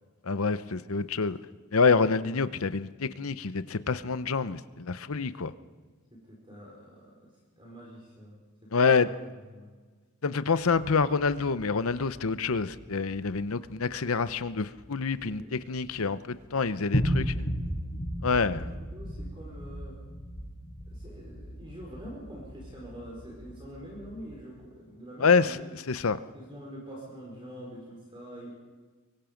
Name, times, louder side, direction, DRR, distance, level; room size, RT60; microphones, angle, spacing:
voice 1, 0.2-1.4 1.7-5.5 8.7-9.1 10.2-17.3 18.2-18.6 25.2-25.6 25.9-26.2, left 4 dB, 75° left, 13 dB, 0.8 m, -27 dB
voice 2, 6.3-7.3 7.6-8.4 8.8-9.1 9.5-9.7 15.1-15.7 18.5-20.0 20.9-25.6 26.3-28.5, equal, 25° right, -3 dB, 4.5 m, -45 dB
sound 1, 10.6-16.0 16.3-16.5 16.9-24.3, equal, 45° left, 6.4 m, -36 dB
24.0 x 23.5 x 5.2 m, 1.4 s
head